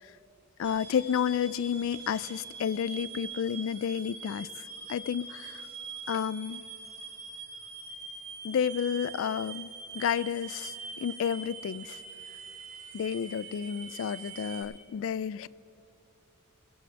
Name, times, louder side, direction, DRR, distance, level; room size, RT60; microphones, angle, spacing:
voice 1, 0.6-4.6 4.9-5.7 6.1-6.6 8.4-12.0 12.9-15.5, left 8 dB, 60° left, 19 dB, 0.3 m, -31 dB
sound 1, 0.6-14.6, right 4 dB, 80° right, 3.1 m, -44 dB
20.5 x 7.7 x 6.9 m, 2.6 s
head